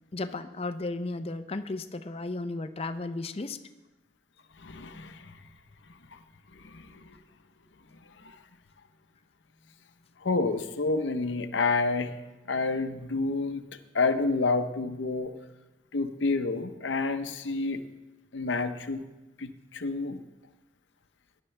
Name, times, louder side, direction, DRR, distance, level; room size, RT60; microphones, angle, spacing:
voice 1, 0.1-3.6, left 2 dB, 35° left, 10 dB, 0.6 m, -34 dB
voice 2, 4.6-5.3 6.1-6.2 6.5-7.2 8.2-8.4 10.2-12.1 12.5-13.6 13.9-15.3 15.9-17.8 18.3-19.0 19.4-20.2, left 3 dB, 85° left, 9 dB, 0.8 m, -29 dB
18.5 x 11.0 x 3.3 m, 1.1 s
head